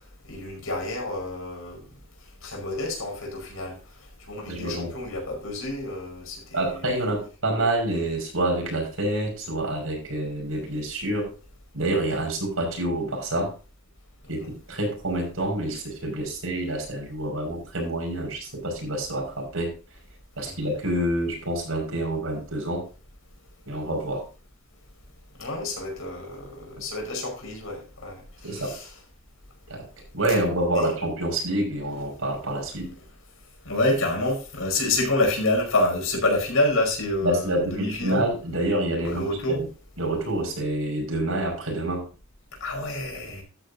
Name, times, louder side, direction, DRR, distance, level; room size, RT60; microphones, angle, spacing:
voice 1, 0.3-1.8 2.4-3.8 4.3-6.8 14.4-14.5 20.5-20.6 25.4-28.9 30.7-30.9 33.7-38.3 39.0-39.6 42.6-43.4, left 2 dB, 75° left, 5.4 m, -28 dB
voice 2, 4.5-5.0 6.5-11.3 11.7-13.5 14.3-19.7 20.4-22.9 23.7-24.2 28.4-28.8 29.7-29.9 30.1-32.9 37.2-39.7 40.0-42.1, right 1 dB, 80° right, 5.8 m, -27 dB
13.0 x 9.5 x 2.7 m
head